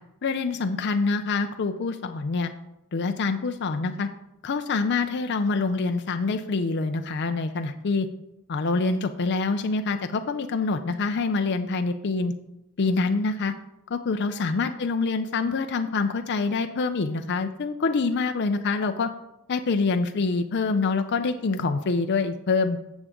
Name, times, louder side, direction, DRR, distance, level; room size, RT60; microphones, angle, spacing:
voice 1, 0.2-2.5 2.9-4.1 4.4-8.1 8.5-12.3 12.8-13.5 13.9-19.1 19.5-22.8, left 4 dB, 50° left, 7 dB, 0.5 m, -26 dB
12.0 x 7.2 x 3.7 m, 0.89 s
head